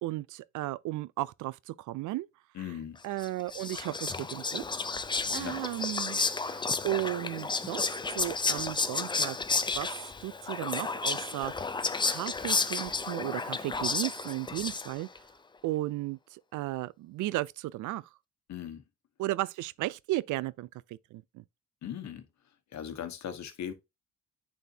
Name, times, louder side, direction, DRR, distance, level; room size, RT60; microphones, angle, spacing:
voice 1, 0.0-2.3 3.0-4.6 5.3-9.4 9.7-9.9 10.2-11.5 12.1-15.1 15.6-18.0 19.2-21.4, right 16 dB, 80° right, 0.5 m, -35 dB
voice 2, 2.5-3.0 5.2-5.6 18.5-18.8 21.8-22.3 22.7-23.7, left 9 dB, 65° left, 1.3 m, -39 dB
Whispering, 3.2-15.2, left 4 dB, 15° left, 0.5 m, -32 dB
9.1 x 4.3 x 2.7 m
cardioid pair, 90°, 30 cm